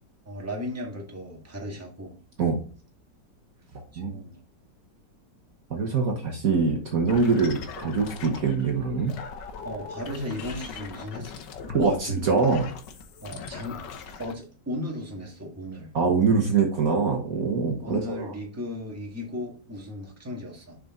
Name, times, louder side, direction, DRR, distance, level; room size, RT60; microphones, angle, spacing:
voice 1, 0.2-2.2 3.9-4.4 9.6-11.4 13.2-13.8 14.2-15.9 17.7-20.8, left 1 dB, 10° right, -1 dB, 1.7 m, -36 dB
voice 2, 5.7-9.1 11.7-12.7 15.9-18.3, right 4 dB, 55° right, 1 dB, 1.5 m, -24 dB
sound 1, 7.1-8.7 9.0-14.4, left 6 dB, 75° left, 1.5 m, -40 dB
6.6 x 5.1 x 3.7 m, 0.40 s
omnidirectional pair, 2.0 m